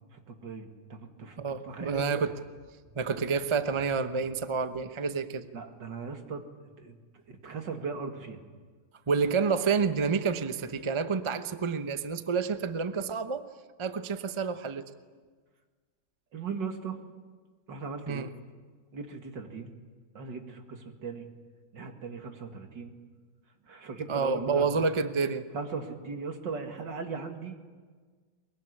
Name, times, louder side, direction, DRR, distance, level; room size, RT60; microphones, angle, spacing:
voice 1, 0.1-2.2 5.5-7.0 7.3-8.4 16.3-17.0 17.7-18.3 18.9-19.7 20.1-21.3 21.7-22.9 23.7-24.8 25.5-27.6, right 5 dB, 70° right, 5 dB, 2.8 m, -38 dB
voice 2, 1.4-2.4 2.9-5.5 9.1-13.4 13.8-14.9 18.1-18.3 24.1-25.5, right 5 dB, 25° right, 9 dB, 0.6 m, -29 dB
22.5 x 22.0 x 9.9 m, 1.5 s
omnidirectional pair, 2.0 m